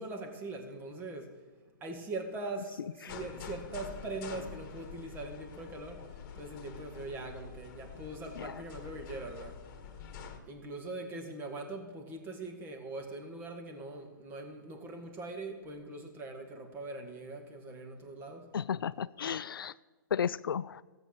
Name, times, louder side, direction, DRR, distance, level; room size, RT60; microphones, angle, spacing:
voice 1, 0.0-1.3 1.8-6.0 6.3-9.5 10.5-18.5, right 2 dB, 20° right, 4 dB, 1.7 m, -42 dB
sound 1, 3.1-10.4, left 6 dB, 40° left, 1.8 m, -47 dB
voice 2, 18.5-19.7 20.1-20.8, left 8 dB, 85° left, 16 dB, 0.4 m, -34 dB
15.0 x 7.9 x 6.5 m, 1.3 s
hypercardioid pair, 145°, 11 cm